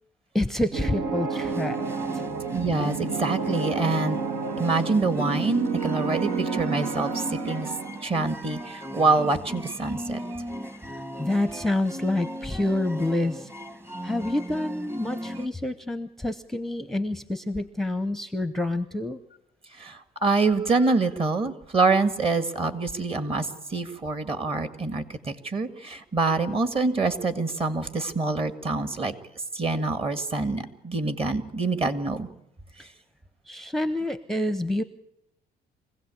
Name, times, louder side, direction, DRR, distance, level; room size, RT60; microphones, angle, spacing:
voice 1, 0.3-1.8 2.1-2.2 10.9-13.5 14.0-19.2 33.5-34.8, left 1 dB, ahead, 11 dB, 0.7 m, -28 dB
sound 1, 0.7-8.1, right 5 dB, 85° right, 1.8 m, -30 dB
sound 2, 1.3-15.5, equal, 15° right, 1.2 m, -37 dB
voice 2, 2.5-4.2 4.6-7.7 8.0-10.2 19.8-29.1 29.5-32.3, right 3 dB, 35° right, 10 dB, 1.9 m, -26 dB
24.0 x 16.5 x 8.4 m, 0.79 s
cardioid pair, 110°, 17 cm